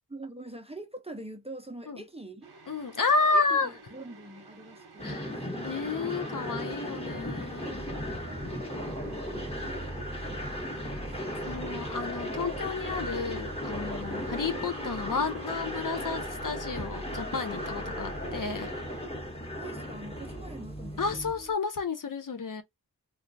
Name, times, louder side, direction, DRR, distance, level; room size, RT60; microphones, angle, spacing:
voice 1, 0.1-2.5 3.2-5.5 7.6-12.0 19.5-21.2, right 2 dB, 15° right, 0.5 m, -46 dB
sound 1, 2.4-19.1, right 4 dB, 70° right, 0.8 m, -52 dB
voice 2, 2.7-3.7 5.0-5.3 5.6-7.9 11.5-18.7 21.0-22.6, left 4 dB, 55° left, 0.6 m, -31 dB
sound 2, 5.0-21.3, equal, 15° left, 1.1 m, -36 dB
sound 3, 7.1-21.5, right 1 dB, 80° left, 1.4 m, -44 dB
3.1 x 2.3 x 2.5 m
wide cardioid pair, 55°, 39 cm